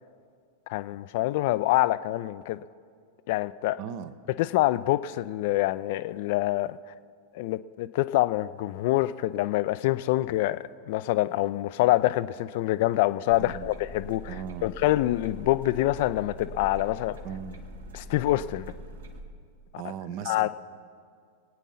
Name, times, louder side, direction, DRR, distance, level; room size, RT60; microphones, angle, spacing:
voice 1, 0.7-2.6 3.3-3.8 4.4-6.8 7.3-10.6 10.9-14.3 14.6-17.2 17.9-18.7 20.3-20.5, left 16 dB, 50° left, 0.3 m, -26 dB
voice 2, 3.8-4.1 13.4-13.7 14.3-14.7 17.2-17.6 19.8-20.5, right 9 dB, 45° right, 0.6 m, -37 dB
sound 1, 13.3-19.2, right 1 dB, 65° right, 1.1 m, -43 dB
23.0 x 9.1 x 4.1 m
figure-of-eight pair, 90°, 0 cm